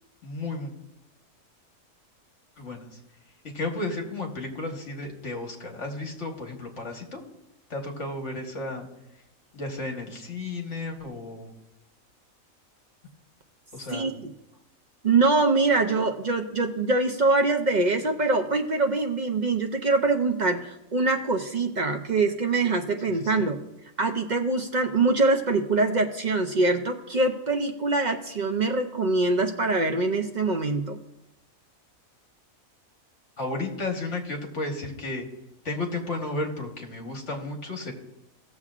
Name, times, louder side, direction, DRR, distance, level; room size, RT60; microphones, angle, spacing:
voice 1, 0.2-0.7 2.6-3.0 3.5-7.2 7.7-8.9 9.5-11.5 13.7-14.1 23.1-23.5 33.4-35.3 35.6-37.9, left 2 dB, 55° left, 2 dB, 1.7 m, -33 dB
voice 2, 13.9-14.3 15.0-23.6 24.0-31.0, right 3 dB, 55° right, 4 dB, 0.5 m, -24 dB
17.5 x 7.1 x 2.4 m, 0.91 s
omnidirectional pair, 1.5 m